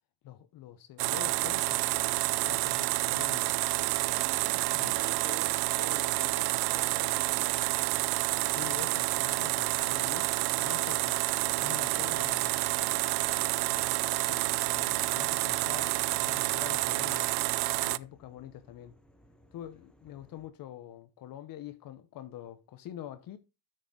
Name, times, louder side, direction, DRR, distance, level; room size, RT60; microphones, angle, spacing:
voice 1, 0.2-1.9 2.4-3.6 4.8-4.9 8.5-11.2 11.6-12.6 13.6-13.9 14.3-17.4 17.8-18.9 19.5-23.4, left 12 dB, 60° left, 0.9 m, -45 dB
sound 1, 1.0-18.0, right 20 dB, 75° right, 0.5 m, -29 dB
voice 2, 4.0-7.7, right 1 dB, 15° right, 3.3 m, -47 dB
sound 2, 14.4-20.5, equal, ahead, 1.0 m, -62 dB
9.6 x 6.6 x 3.7 m
cardioid pair, 130°, 39 cm